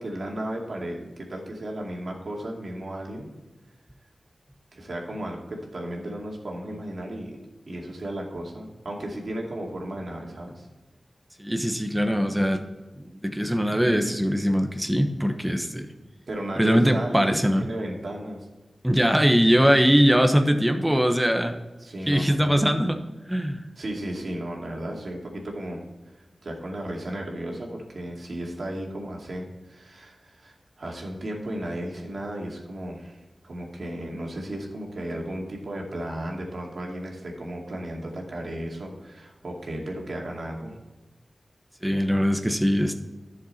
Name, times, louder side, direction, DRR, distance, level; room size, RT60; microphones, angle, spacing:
voice 1, 0.0-3.3 4.7-7.4 7.7-10.7 16.3-18.5 21.8-22.6 23.8-25.8 26.2-40.8, right 1 dB, 65° right, -1 dB, 2.4 m, -34 dB
voice 2, 11.4-12.6 13.0-15.9 16.6-17.6 18.8-21.6 22.1-23.0 23.3-23.6 41.8-42.9, equal, 5° right, 5 dB, 1.1 m, -21 dB
11.0 x 6.8 x 4.3 m, 1.2 s
wide cardioid pair, 70°, 0 cm